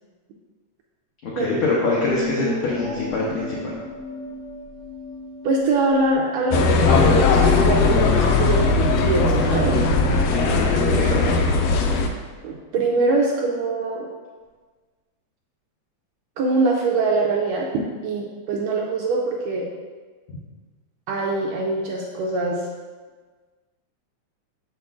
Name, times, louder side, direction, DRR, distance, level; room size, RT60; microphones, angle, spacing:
voice 1, 1.2-3.7 10.6-11.3, left 3 dB, 70° left, -5 dB, 1.3 m, -24 dB
sound 1, 1.9-9.6, left 1 dB, 55° left, 2.1 m, -35 dB
voice 2, 5.4-8.6 9.0-9.8 12.4-14.1 16.4-17.7 18.0-19.7 21.1-22.7, right 3 dB, 80° right, -2 dB, 1.6 m, -23 dB
sound 2, 6.5-12.1, left 4 dB, 90° left, 1.4 m, -18 dB
7.1 x 6.0 x 2.5 m, 1.4 s
omnidirectional pair, 3.4 m